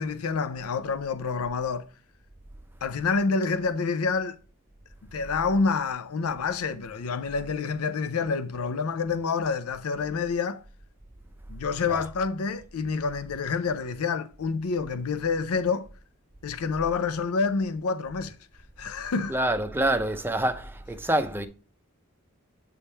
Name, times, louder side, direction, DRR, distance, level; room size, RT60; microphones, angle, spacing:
voice 1, 0.0-1.9 2.8-4.4 5.1-10.6 11.5-15.9 16.4-18.4 18.8-19.4, left 4 dB, 85° left, 0.5 m, -28 dB
voice 2, 19.3-21.5, right 1 dB, 10° right, 0.6 m, -26 dB
8.4 x 3.6 x 4.2 m
head